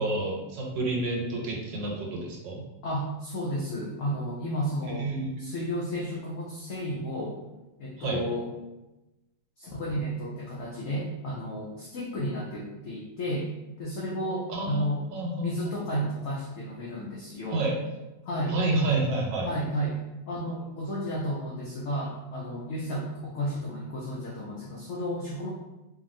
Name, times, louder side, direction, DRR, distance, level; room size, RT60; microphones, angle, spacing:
voice 1, 0.0-2.6 5.0-5.5 8.0-8.2 14.5-16.1 17.5-17.7 18.5-19.5, right 2 dB, 90° right, -1 dB, 1.4 m, -29 dB
voice 2, 2.8-5.1 5.4-7.4 7.8-8.5 9.6-13.5 13.8-15.0 15.4-17.6 18.2-18.5 19.4-20.0 20.3-25.5, equal, 85° left, -4 dB, 0.7 m, -32 dB
2.8 x 2.6 x 2.5 m, 1.0 s
omnidirectional pair, 1.9 m